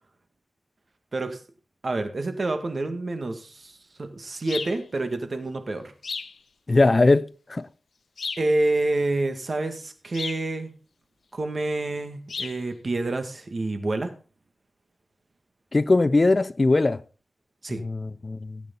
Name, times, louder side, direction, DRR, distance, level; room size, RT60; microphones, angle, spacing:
voice 1, 1.8-3.7 4.0-5.9 8.4-10.7 11.3-14.1 17.6-17.8, right 2 dB, 50° right, 1.9 m, -28 dB
sound 1, 4.5-4.8 6.0-6.4 8.2-8.5 10.1-10.5 12.3-12.6, left 5 dB, 85° left, 0.7 m, -33 dB
voice 2, 6.7-7.6 15.7-17.0 17.8-18.6, left 2 dB, 40° left, 0.5 m, -20 dB
16.5 x 8.4 x 3.9 m
wide cardioid pair, 100°, 0 cm